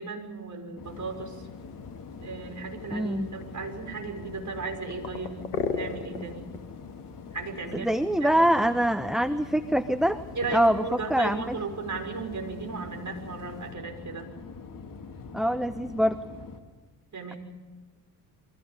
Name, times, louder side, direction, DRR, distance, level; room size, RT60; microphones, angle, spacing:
voice 1, 0.0-1.5 2.2-5.4 5.7-6.5 7.3-8.6 10.3-14.3 17.1-17.4, right 4 dB, 40° right, 4 dB, 6.0 m, -36 dB
sound 1, 0.7-16.6, left 5 dB, 45° left, 2.8 m, -44 dB
sound 2, 0.8-13.7, left 5 dB, 90° left, 1.4 m, -42 dB
voice 2, 2.9-3.3 7.7-10.2 10.5-10.8 11.1-11.6 15.3-16.2, equal, ahead, 11 dB, 1.0 m, -24 dB
28.5 x 24.0 x 5.4 m, 1.4 s
hypercardioid pair, 45°, 45 cm